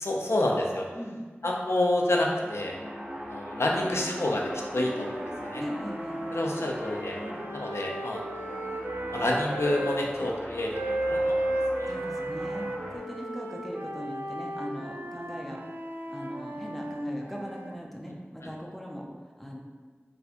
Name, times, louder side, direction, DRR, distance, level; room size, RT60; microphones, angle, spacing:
voice 1, 0.0-0.9 1.4-2.8 3.3-5.6 6.3-7.2 7.5-8.6 9.1-11.9 18.4-18.5, left 1 dB, 80° left, -1 dB, 0.4 m, -29 dB
sound 1, 1.9-13.0, equal, 25° right, 0.9 m, -41 dB
sound 2, 3.7-10.0 10.7-17.8, right 1 dB, 55° right, 0.3 m, -35 dB
voice 2, 5.6-6.2 7.2-7.4 11.9-15.6 16.1-19.1 19.4-19.6, equal, ahead, -1 dB, 0.5 m, -39 dB
4.2 x 2.2 x 2.8 m, 1.4 s
wide cardioid pair, 50°, 4 cm